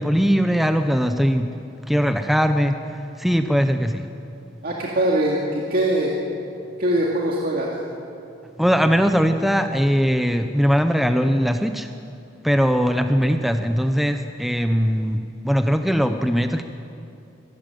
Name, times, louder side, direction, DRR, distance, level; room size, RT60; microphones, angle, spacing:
voice 1, 0.0-1.5 1.9-4.1 8.6-11.9 12.4-16.6, equal, ahead, 7 dB, 0.6 m, -20 dB
voice 2, 4.6-6.1 6.8-7.7, right 1 dB, 50° right, -3 dB, 2.3 m, -22 dB
26.0 x 13.0 x 9.1 m, 2.7 s
head